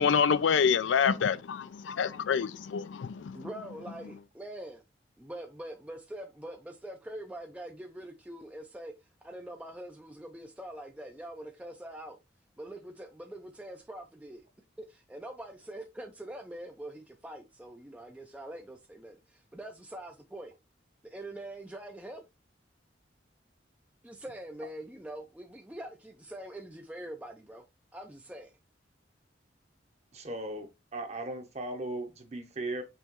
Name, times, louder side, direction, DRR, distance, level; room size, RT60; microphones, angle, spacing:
voice 1, 0.0-3.5, left 6 dB, 80° left, 0.4 m, -27 dB
voice 2, 3.3-4.8 5.2-8.9 9.2-12.2 12.6-14.4 14.8-20.5 21.0-22.2 24.0-27.6 27.9-28.5, right 1 dB, 5° right, 0.4 m, -44 dB
voice 3, 30.1-32.8, right 2 dB, 35° right, 0.9 m, -37 dB
5.5 x 3.0 x 2.9 m
head